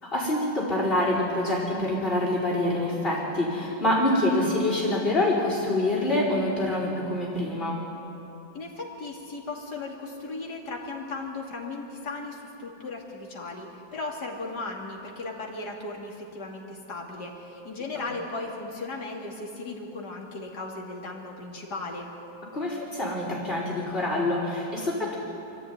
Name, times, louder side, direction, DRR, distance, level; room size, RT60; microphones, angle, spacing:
voice 1, 0.0-7.8 18.0-18.1 22.5-25.2, left 1 dB, 30° left, -6 dB, 5.4 m, -26 dB
voice 2, 8.5-22.1, left 3 dB, 60° left, -1 dB, 3.2 m, -36 dB
24.0 x 14.5 x 9.6 m, 2.9 s
omnidirectional pair, 2.0 m